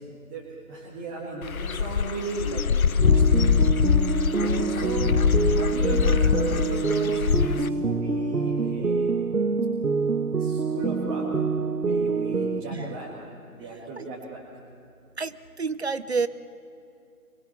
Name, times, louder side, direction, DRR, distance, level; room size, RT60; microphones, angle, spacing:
voice 1, 0.1-3.7 4.4-5.2 5.4-9.2 10.4-11.3 11.8-13.1 13.5-14.4, right 2 dB, 10° right, -5 dB, 1.9 m, -36 dB
Dog / Bird, 1.4-7.7, left 6 dB, 65° left, 0.7 m, -23 dB
sound 1, 3.0-12.6, right 4 dB, 85° right, 1.3 m, -26 dB
voice 2, 15.2-16.3, right 4 dB, 45° right, 15 dB, 0.6 m, -30 dB
24.0 x 21.5 x 7.3 m, 2.6 s
figure-of-eight pair, 150°, 45 cm